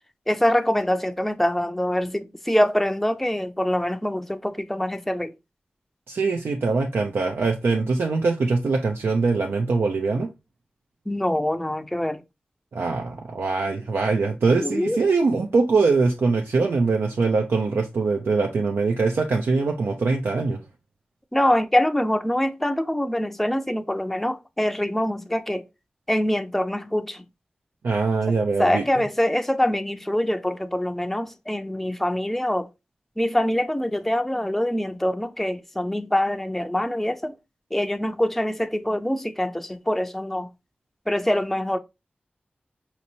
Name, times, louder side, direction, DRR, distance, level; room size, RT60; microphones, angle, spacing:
voice 1, 0.3-5.3 11.1-12.2 14.6-15.0 21.3-25.6 26.1-27.2 28.3-32.7 33.2-37.3 37.7-40.5 41.1-41.8, left 1 dB, 5° left, 0.4 m, -24 dB
voice 2, 6.1-10.3 12.7-20.6 27.8-29.0, right 4 dB, 85° right, 0.5 m, -22 dB
5.2 x 2.9 x 2.7 m
cardioid pair, 40°, 4 cm